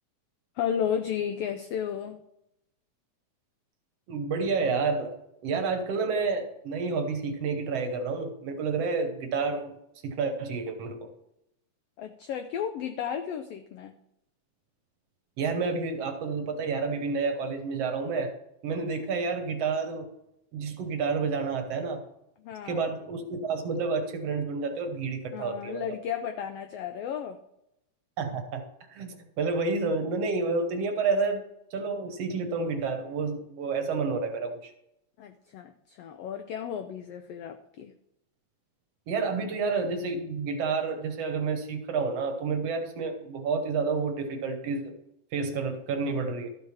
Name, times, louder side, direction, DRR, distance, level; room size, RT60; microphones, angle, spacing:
voice 1, 0.6-2.2 12.0-14.0 22.4-22.9 25.3-27.4 35.2-37.9, left 8 dB, 85° left, 7 dB, 1.4 m, -33 dB
voice 2, 4.1-5.2 5.4-9.8 10.0-11.1 15.4-18.3 18.6-20.1 20.5-22.0 22.6-25.8 28.2-28.6 28.9-31.4 31.7-34.7 39.1-44.9 45.3-46.5, right 4 dB, 65° right, 6 dB, 1.8 m, -29 dB
12.5 x 5.5 x 5.7 m, 0.82 s
omnidirectional pair, 3.4 m